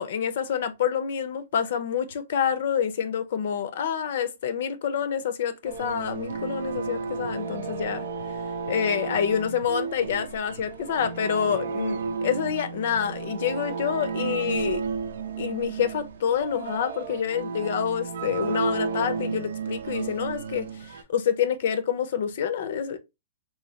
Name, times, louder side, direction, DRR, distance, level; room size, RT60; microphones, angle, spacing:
voice 1, 0.0-8.1 8.7-14.8 15.4-23.0, left 8 dB, 60° left, 0.6 m, -27 dB
sound 1, 5.6-21.0, right 5 dB, 80° right, 0.6 m, -33 dB
3.1 x 3.0 x 2.8 m
hypercardioid pair, 155°, 0 cm